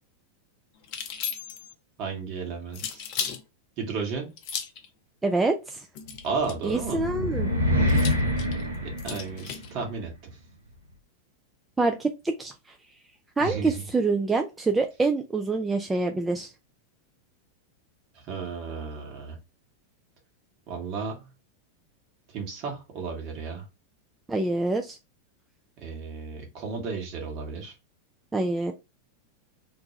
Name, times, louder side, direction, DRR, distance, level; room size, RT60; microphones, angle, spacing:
sound 1, 0.8-1.7 2.7-3.4 4.4-4.9 5.9-6.7 7.9-9.7, left 7 dB, 50° left, 0.5 m, -35 dB
voice 1, 2.0-3.1 3.8-4.3 6.2-7.1 8.8-10.4 13.4-13.9 18.1-19.4 20.7-21.3 22.3-23.7 25.8-27.8, right 5 dB, 45° right, 1 dB, 1.2 m, -34 dB
voice 2, 5.2-5.8 6.6-7.5 11.8-12.5 13.4-16.5 24.3-25.0 28.3-28.7, right 3 dB, 15° right, 4 dB, 0.3 m, -26 dB
sound 2, 6.3-9.8, left 1 dB, 90° right, 0.7 m, -26 dB
2.6 x 2.2 x 3.0 m, 0.26 s
figure-of-eight pair, 90°, 0 cm